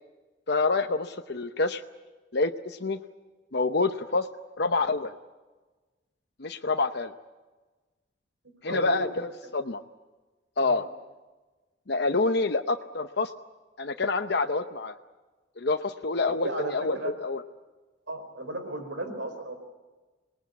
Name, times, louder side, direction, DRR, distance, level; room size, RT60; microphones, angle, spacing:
voice 1, 0.5-1.8 2.3-3.0 3.5-4.3 4.6-5.1 6.4-7.1 8.6-9.8 10.6-10.9 11.9-13.3 13.8-15.0 15.6-17.4, left 3 dB, 60° left, 5 dB, 0.8 m, -27 dB
voice 2, 8.7-9.0 10.6-10.9 16.3-17.1 18.1-19.5, right 2 dB, 90° right, 7 dB, 4.8 m, -35 dB
26.5 x 19.5 x 8.3 m, 1.2 s
head